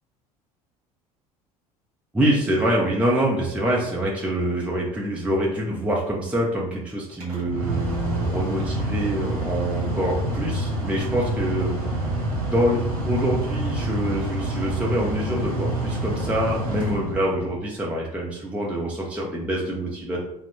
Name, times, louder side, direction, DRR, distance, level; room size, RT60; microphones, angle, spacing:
voice 1, 2.1-12.1 12.4-20.2, equal, 5° right, -4 dB, 1.0 m, -25 dB
Mechanical fan, 7.1-17.6, right 1 dB, 80° right, 1.4 m, -27 dB
4.9 x 2.5 x 3.6 m, 0.78 s
figure-of-eight pair, 65°, 19 cm